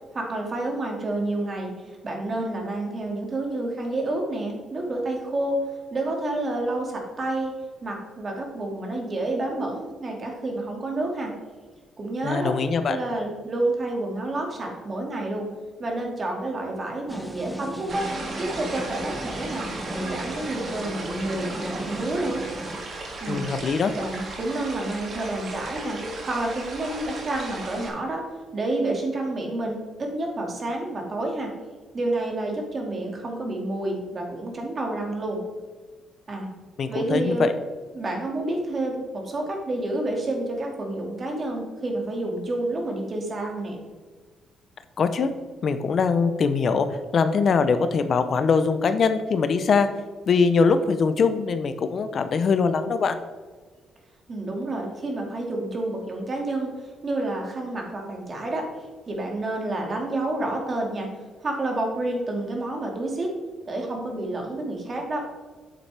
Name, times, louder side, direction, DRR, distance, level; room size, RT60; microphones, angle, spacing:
voice 1, 0.1-1.7 2.0-5.6 5.9-7.5 7.8-11.3 12.0-12.5 12.9-15.5 15.8-18.0 18.4-22.5 23.2-23.4 23.9-28.3 28.5-31.5 31.9-35.4 36.3-36.5 36.9-37.5 37.9-43.8 54.3-56.7 57.0-58.7 59.1-61.1 61.4-63.3 63.7-65.2, right 2 dB, 40° right, 1 dB, 2.1 m, -29 dB
voice 2, 12.2-13.0 23.3-23.9 36.8-37.5 45.0-45.3 45.6-49.9 50.3-53.2, left 5 dB, 55° left, 10 dB, 0.6 m, -22 dB
sound 1, 17.1-22.8, right 1 dB, 5° right, 0.9 m, -36 dB
sound 2, 17.9-27.9, right 2 dB, 55° right, 1.9 m, -36 dB
8.7 x 7.1 x 3.4 m, 1.4 s
cardioid pair, 90°, 0 cm